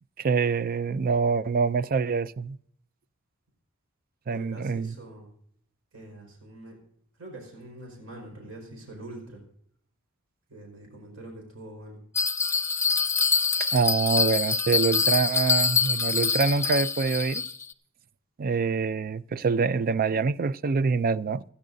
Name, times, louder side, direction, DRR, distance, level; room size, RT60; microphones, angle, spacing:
voice 1, 0.2-2.6 4.3-4.9 13.6-17.5 18.4-21.4, right 5 dB, 45° right, 0.4 m, -25 dB
voice 2, 4.3-5.3 5.9-6.8 7.2-9.4 10.5-12.0, right 1 dB, 80° right, 4.8 m, -44 dB
Bell, 12.1-17.7, left 5 dB, 15° left, 0.7 m, -25 dB
27.5 x 10.0 x 2.6 m
head